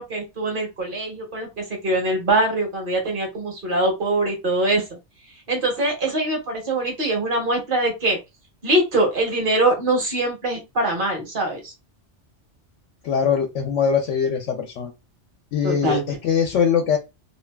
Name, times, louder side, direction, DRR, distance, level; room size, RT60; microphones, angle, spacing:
voice 1, 0.0-4.8 5.5-8.2 8.6-11.7 15.6-16.0, right 2 dB, 50° right, 2 dB, 1.0 m, -23 dB
voice 2, 13.0-14.9 15.5-17.0, left 7 dB, 85° left, 3 dB, 0.9 m, -22 dB
2.7 x 2.3 x 2.2 m, 0.24 s
omnidirectional pair, 1.2 m